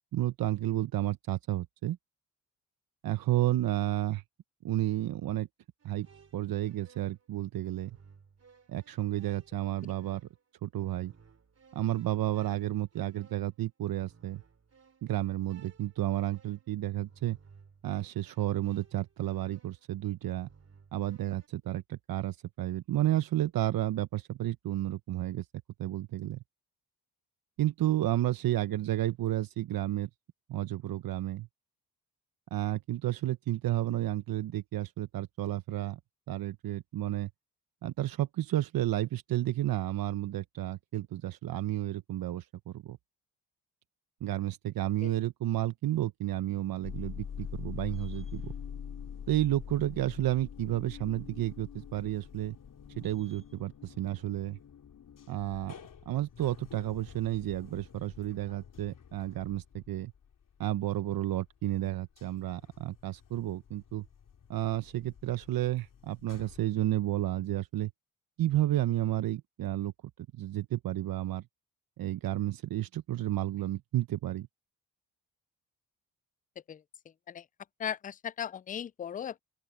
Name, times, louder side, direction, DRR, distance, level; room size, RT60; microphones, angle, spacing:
voice 1, 0.1-2.0 3.0-4.2 4.6-5.5 5.8-6.1 6.3-8.0 8.7-10.2 10.6-11.1 11.7-14.4 15.0-17.4 17.8-20.5 20.9-25.5 25.8-26.4 27.6-30.1 30.5-31.5 32.5-36.0 36.3-37.3 37.8-43.0 44.2-48.5 49.3-52.6 52.9-54.6 55.3-55.7 56.1-60.1 60.6-64.1 64.5-67.9 68.4-69.9 70.4-71.4 72.0-74.5, right 14 dB, 65° right, 0.9 m, -31 dB
sound 1, 5.8-21.5, right 5 dB, 40° right, 3.0 m, -60 dB
sound 2, 46.8-61.4 61.8-66.6, left 7 dB, 55° left, 3.7 m, -46 dB
voice 2, 77.8-79.4, left 9 dB, 25° left, 0.4 m, -37 dB
open air
supercardioid pair, 65°, 38 cm